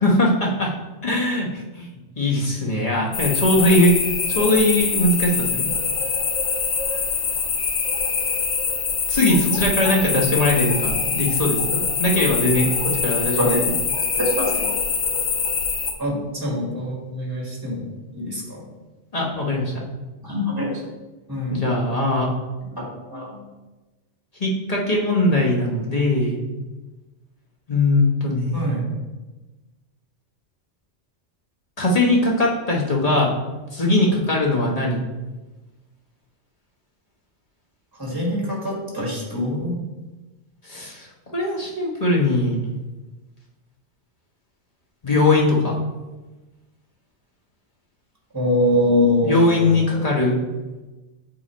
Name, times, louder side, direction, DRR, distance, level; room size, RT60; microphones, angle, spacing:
voice 1, 0.0-0.7 1.0-1.5 1.7-1.9 2.1-5.7 9.1-13.5 19.1-19.7 21.5-22.3 24.4-26.4 27.7-28.7 31.8-33.3 33.7-35.0 40.6-42.6 45.0-45.8 49.2-50.4, left 1 dB, 35° left, -3 dB, 1.1 m, -20 dB
sound 1, 3.1-15.9, left 5 dB, 85° left, 1.1 m, -24 dB
voice 2, 13.3-13.6 14.1-14.7 16.0-18.6 20.2-20.8 21.3-21.6 22.8-23.5 28.5-28.8 38.0-39.8 48.3-50.0, left 1 dB, 20° right, -3 dB, 1.5 m, -24 dB
7.8 x 3.0 x 4.4 m, 1.2 s
omnidirectional pair, 1.3 m